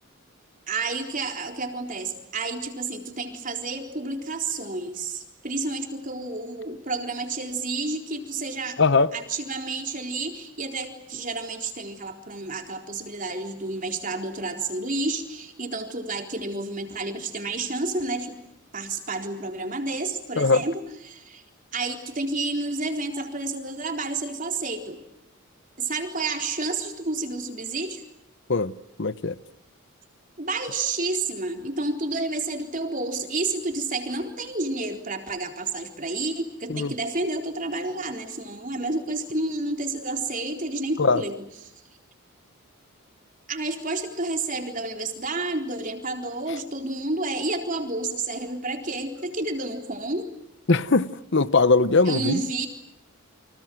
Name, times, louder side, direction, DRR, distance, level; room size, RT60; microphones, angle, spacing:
voice 1, 0.7-8.8 9.1-18.4 18.7-21.4 21.7-25.0 25.8-28.0 30.4-41.3 43.5-50.3 52.1-52.7, right 3 dB, 40° right, 4.0 m, -30 dB
voice 2, 8.8-9.1 20.4-20.6 28.5-29.4 36.7-36.9 41.0-41.2 50.7-52.4, left 3 dB, 55° left, 1.0 m, -21 dB
30.0 x 25.5 x 7.8 m
head